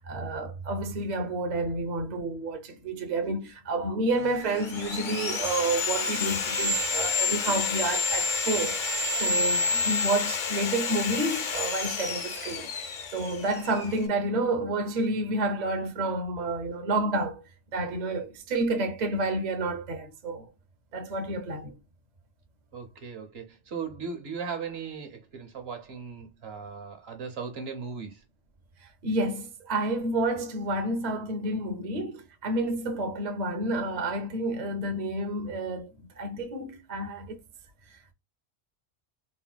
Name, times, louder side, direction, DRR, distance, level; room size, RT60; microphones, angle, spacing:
voice 1, 0.0-8.8 9.2-12.7 13.1-17.4 17.7-20.5 20.9-21.7 29.0-35.9 36.2-37.4, right 2 dB, 45° right, 0.7 m, -29 dB
Sawing, 4.2-14.0, left 4 dB, 55° left, 0.7 m, -29 dB
voice 2, 22.7-28.2, right 5 dB, 65° right, 1.1 m, -37 dB
4.2 x 2.1 x 2.2 m
omnidirectional pair, 1.2 m